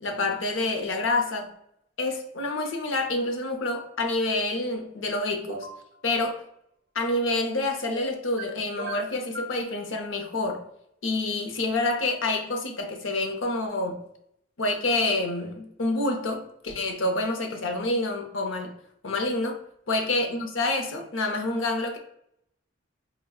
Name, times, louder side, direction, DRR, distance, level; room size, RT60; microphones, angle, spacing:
voice 1, 0.0-1.5 2.0-5.7 6.0-6.4 6.9-10.7 11.0-14.0 14.6-18.7 19.0-19.6 19.9-22.0, left 2 dB, 80° left, 0.7 m, -27 dB
sound 1, 5.5-5.8 7.9-8.5 8.8-9.6, right 2 dB, 60° right, 0.6 m, -37 dB
5.0 x 2.2 x 2.3 m
head